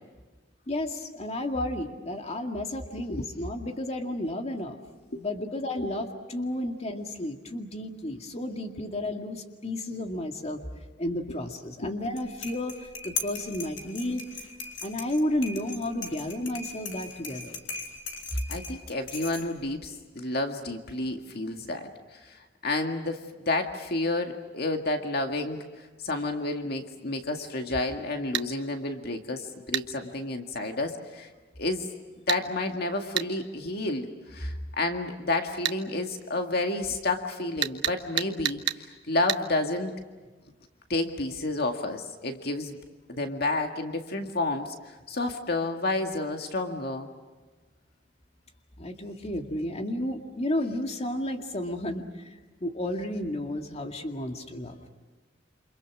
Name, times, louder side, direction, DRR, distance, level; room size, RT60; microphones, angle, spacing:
voice 1, 0.7-4.8 5.2-10.6 11.0-14.2 14.8-17.6 48.8-54.8, left 1 dB, 35° left, 4 dB, 2.2 m, -32 dB
sound 1, 12.0-19.7, left 4 dB, 80° left, 3.9 m, -39 dB
voice 2, 18.5-25.6 26.0-31.3 31.6-31.9 32.3-39.9 40.9-42.8 43.1-47.1, left 2 dB, 55° left, 4 dB, 2.0 m, -30 dB
sound 2, 28.3-28.5 29.7-29.9 32.3-32.4 33.2-33.3 35.6-35.8 37.6-38.8 39.3-39.4, right 11 dB, 70° right, 1.2 m, -28 dB
29.0 x 27.5 x 6.2 m, 1.3 s
head